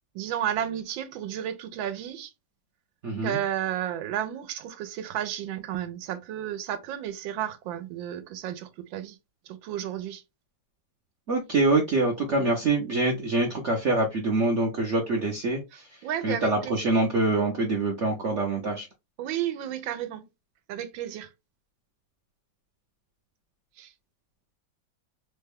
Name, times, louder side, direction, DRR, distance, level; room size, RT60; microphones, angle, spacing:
voice 1, 0.1-2.3 3.2-9.2 9.5-10.2 12.3-12.5 15.7-16.8 19.2-20.2 20.7-21.3 23.8-23.9, right 10 dB, 85° right, 1.3 m, -32 dB
voice 2, 3.0-3.4 11.3-15.6 16.2-18.9, right 2 dB, 60° right, 0.7 m, -25 dB
3.4 x 2.2 x 3.4 m
omnidirectional pair, 2.1 m